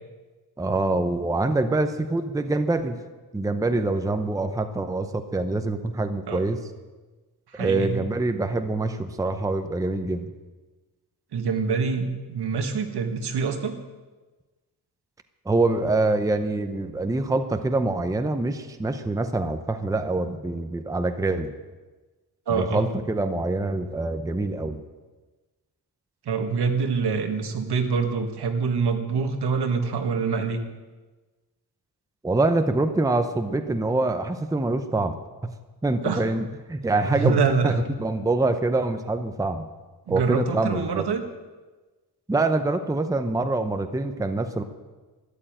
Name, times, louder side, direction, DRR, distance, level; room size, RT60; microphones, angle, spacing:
voice 1, 0.6-3.0 3.3-6.6 7.6-10.3 15.5-21.5 22.6-24.8 32.2-35.2 35.8-37.4 37.6-39.6 40.1-41.0 42.3-44.6, right 2 dB, 10° right, 8 dB, 0.7 m, -25 dB
voice 2, 7.5-8.0 11.3-13.8 22.5-22.9 26.3-30.6 36.0-36.2 37.0-37.7 40.1-41.2, right 5 dB, 75° right, 5 dB, 1.9 m, -25 dB
13.0 x 11.5 x 8.9 m, 1.3 s
wide cardioid pair, 180°, 40 cm